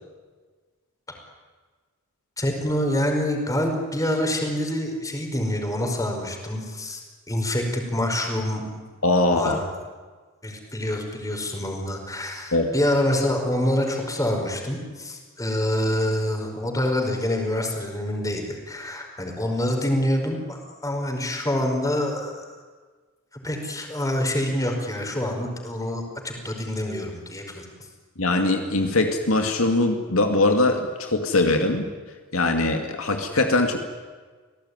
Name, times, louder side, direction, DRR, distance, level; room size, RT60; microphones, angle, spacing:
voice 1, 2.4-7.0 7.3-8.8 9.3-9.6 10.4-22.5 23.3-27.6, left 1 dB, 15° left, 2 dB, 5.1 m, -26 dB
voice 2, 9.0-9.6 12.5-12.7 28.2-31.9 32.3-33.8, left 2 dB, 70° left, 4 dB, 2.4 m, -21 dB
28.0 x 18.0 x 9.8 m, 1.4 s
head